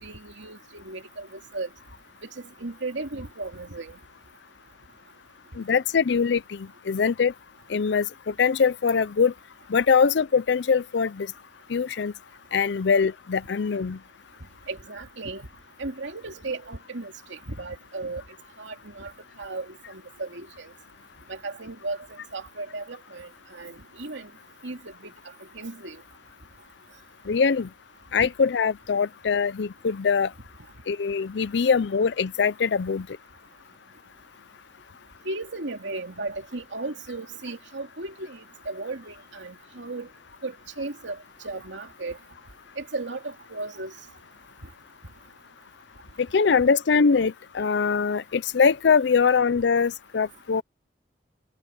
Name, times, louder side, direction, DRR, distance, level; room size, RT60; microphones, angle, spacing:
voice 1, 0.0-1.7 2.4-4.0 14.7-15.5 15.8-18.2 18.6-19.1 19.4-20.7 21.3-22.0 22.3-24.3 24.6-25.1 25.5-26.0 28.2-28.3 35.2-40.1 40.4-41.2 41.4-42.2 42.8-43.9, right 3 dB, 85° right, 2.7 m, -35 dB
voice 2, 5.6-7.3 7.7-9.3 9.7-11.3 11.7-12.1 12.5-14.0 27.3-27.7 28.1-30.3 30.9-33.1 46.3-50.6, left 5 dB, 75° left, 0.5 m, -22 dB
head